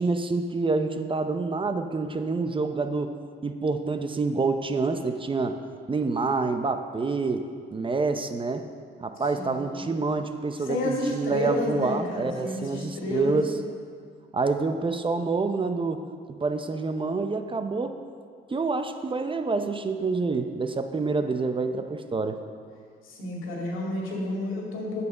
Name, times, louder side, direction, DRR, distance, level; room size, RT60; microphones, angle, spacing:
voice 1, 0.0-3.1 3.4-5.6 5.9-8.7 9.0-13.5 14.3-16.0 16.4-17.9 18.5-22.4, right 3 dB, 25° right, 8 dB, 0.6 m, -27 dB
voice 2, 9.2-9.9 10.6-13.4 23.0-25.1, left 2 dB, 85° left, -2 dB, 2.4 m, -30 dB
8.1 x 7.2 x 6.5 m, 2.1 s
cardioid pair, 90°, 20 cm